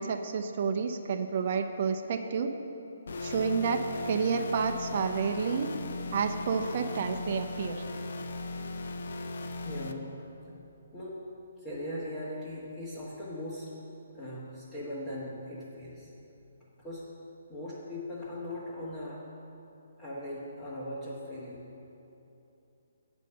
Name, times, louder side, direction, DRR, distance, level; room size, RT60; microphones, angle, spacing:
voice 1, 0.0-2.5 3.2-5.7 6.1-7.8, right 5 dB, 45° right, 5 dB, 0.6 m, -30 dB
sound 1, 3.1-9.9, left 2 dB, 65° left, 0.6 m, -38 dB
voice 2, 9.6-10.1 10.9-11.2 11.6-13.7 14.1-16.1 16.8-17.0 17.5-19.2 20.0-21.6, left 1 dB, 20° left, -10 dB, 1.5 m, -39 dB
8.3 x 5.3 x 7.6 m, 2.9 s
hypercardioid pair, 155°, 0 cm